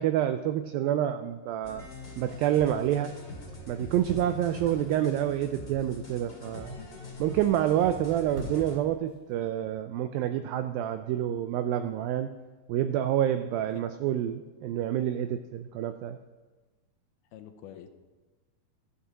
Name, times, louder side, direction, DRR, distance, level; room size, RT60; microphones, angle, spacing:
voice 1, 0.0-1.8 2.2-3.1 3.7-6.7 7.2-12.3 12.7-16.2, right 11 dB, 85° right, 9 dB, 2.0 m, -28 dB
sound 1, 1.6-8.8, left 2 dB, 25° left, 1.9 m, -43 dB
sound 2, 1.7-9.5, equal, 40° right, 2.6 m, -48 dB
voice 2, 17.3-17.9, left 10 dB, 80° left, 7 dB, 2.6 m, -46 dB
15.0 x 8.6 x 6.2 m, 1.2 s
omnidirectional pair, 4.7 m